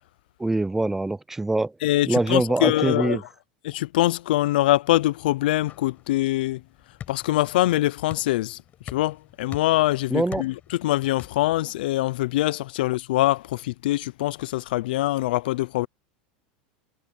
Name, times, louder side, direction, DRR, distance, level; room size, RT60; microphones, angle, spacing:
voice 1, 0.4-1.7 2.1-3.2 10.1-10.4, right 2 dB, 5° right, 0.4 m, -24 dB
voice 2, 1.8-3.2 3.7-6.6 7.1-8.6 8.9-10.5 10.8-15.9, left 16 dB, 80° left, 0.5 m, -23 dB
sound 1, 5.0-11.6, left 10 dB, 30° left, 5.0 m, -45 dB
supercardioid pair, 140°, 5 cm